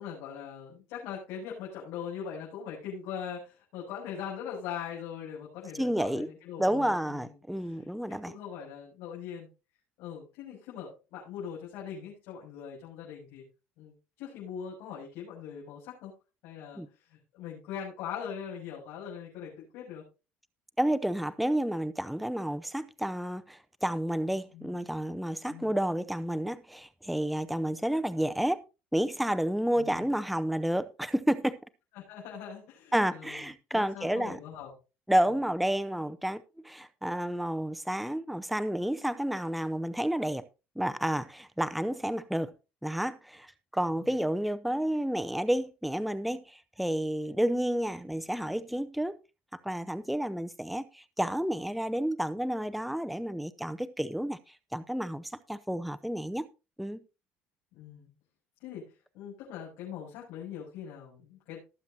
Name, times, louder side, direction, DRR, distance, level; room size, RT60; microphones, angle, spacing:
voice 1, 0.0-9.5 10.0-13.4 13.8-16.1 16.4-20.0 24.5-24.8 25.5-25.7 29.8-30.1 31.9-33.4 33.7-34.7 43.8-44.1 57.7-58.1 58.6-61.6, left 8 dB, 75° left, 7.0 m, -41 dB
voice 2, 5.7-6.3 6.6-8.3 16.8-16.9 20.8-28.6 28.9-31.6 32.9-34.4 35.1-40.4 40.8-42.5 42.8-49.2 49.6-54.4 54.7-56.5 56.8-57.0, right 1 dB, ahead, 0.6 m, -30 dB
19.5 x 7.5 x 2.8 m
cardioid pair, 120°, 4 cm